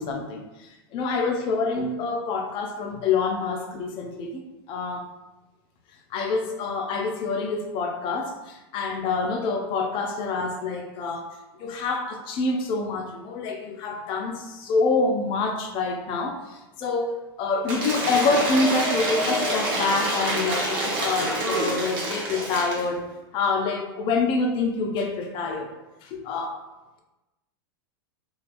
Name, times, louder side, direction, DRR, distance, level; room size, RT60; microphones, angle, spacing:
voice 1, 0.0-4.4 4.7-5.0 6.1-11.3 11.6-23.1 23.3-26.6, left 3 dB, 40° left, 2 dB, 0.5 m, -27 dB
Cheering / Applause / Crowd, 17.7-22.9, right 1 dB, 60° right, 0.9 m, -27 dB
3.2 x 2.3 x 2.5 m, 1.0 s
hypercardioid pair, 105°, 13 cm